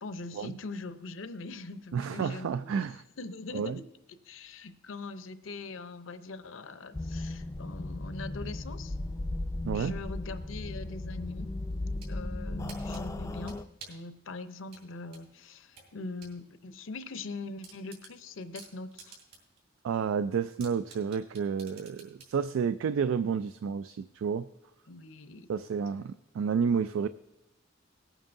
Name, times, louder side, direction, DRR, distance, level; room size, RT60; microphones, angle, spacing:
voice 1, 0.0-3.9 4.2-9.0 9.7-11.5 12.1-19.2 24.9-25.5, left 3 dB, 80° left, 11 dB, 0.7 m, -42 dB
voice 2, 1.9-3.0 3.5-3.8 9.6-9.9 19.8-24.5 25.5-27.1, right 6 dB, 85° right, 13 dB, 0.3 m, -30 dB
sound 1, 6.9-13.6, left 2 dB, 15° left, 0.3 m, -36 dB
sound 2, 11.7-12.1 12.7-14.1 14.7-16.4 16.7-16.8 17.2-17.3 17.6-19.6 19.9-20.0 20.6-22.3, right 4 dB, 55° right, 3.6 m, -50 dB
19.0 x 9.0 x 2.6 m, 0.90 s
head